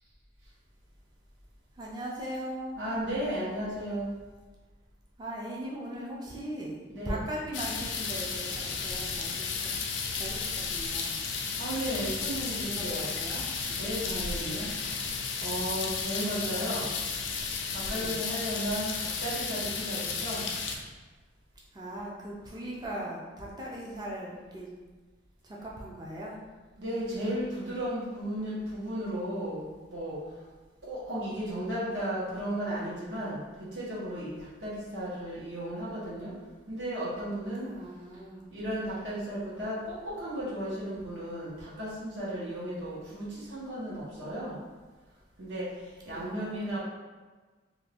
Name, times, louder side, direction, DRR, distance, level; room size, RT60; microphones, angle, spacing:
voice 1, 1.8-2.8 5.2-6.8 7.0-9.7 10.1-11.2 12.5-13.4 14.0-14.6 16.2-16.8 17.9-18.2 21.7-24.7 25.4-26.4 37.6-38.5 46.1-46.8, right 1 dB, 20° right, -4 dB, 0.4 m, -39 dB
voice 2, 2.8-4.1 6.9-7.2 11.6-13.2 13.7-14.7 15.4-16.9 17.7-20.5 26.8-29.6 29.9-30.2 30.8-33.4 33.7-36.3 36.7-37.7 38.5-44.5 45.4-45.7 46.0-46.8, right 1 dB, 75° right, -8 dB, 1.1 m, -34 dB
sound 1, 7.5-20.8, left 5 dB, 85° left, 0.4 m, -33 dB
2.6 x 2.4 x 3.4 m, 1.3 s
head